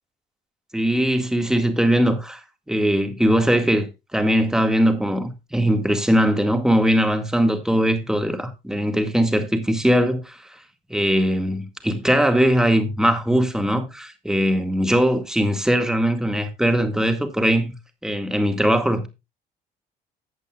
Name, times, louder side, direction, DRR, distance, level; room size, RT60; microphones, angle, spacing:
voice 1, 0.7-2.4 2.7-3.9 4.1-10.4 10.9-17.7 18.0-19.1, equal, 5° right, 2.0 m, -20 dB
14.5 x 8.2 x 2.4 m
cardioid pair, 110°, 17 cm